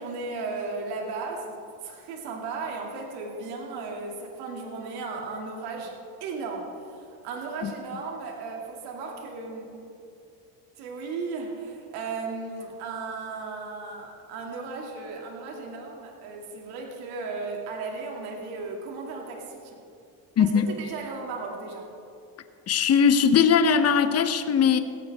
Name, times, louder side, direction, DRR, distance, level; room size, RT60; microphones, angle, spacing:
voice 1, 0.0-9.8 10.8-19.8 20.4-21.9, right 4 dB, 85° right, 0 dB, 2.6 m, -35 dB
voice 2, 20.4-20.7 22.7-24.8, left 7 dB, 40° left, 10 dB, 1.0 m, -20 dB
17.5 x 16.0 x 3.6 m, 2.5 s
cardioid pair, 110°, 37 cm